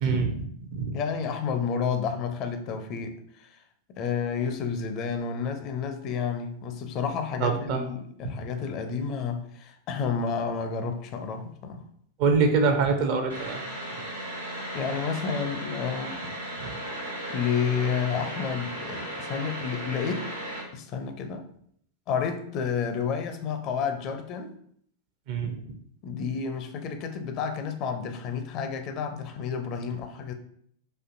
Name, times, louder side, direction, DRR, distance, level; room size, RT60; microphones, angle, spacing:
voice 1, 0.0-1.0 7.4-7.9 8.2-8.3 12.2-13.6 16.6-16.7 25.3-25.6, right 4 dB, 45° right, 0.5 m, -25 dB
voice 2, 0.9-3.1 3.4-3.6 4.0-11.8 14.7-16.3 17.3-20.3 20.7-21.4 22.1-24.5 26.0-30.3, left 6 dB, 40° left, 0.5 m, -30 dB
sound 1, 13.3-20.6, right 1 dB, 80° right, 1.1 m, -36 dB
4.2 x 2.5 x 2.6 m
figure-of-eight pair, 90°, 0 cm